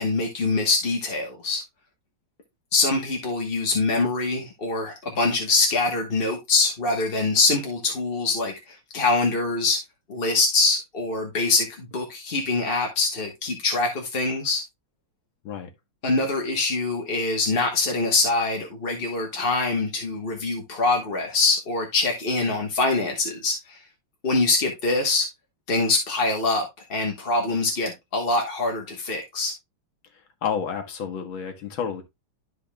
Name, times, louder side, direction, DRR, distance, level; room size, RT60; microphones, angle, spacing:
voice 1, 0.0-1.6 2.7-9.8 10.1-14.6 16.0-23.8 24.2-25.3 25.7-26.6 26.9-29.5, left 3 dB, 35° left, 1.1 m, -24 dB
voice 2, 30.4-32.0, left 7 dB, 70° left, 2.0 m, -30 dB
12.0 x 5.0 x 2.3 m
omnidirectional pair, 2.3 m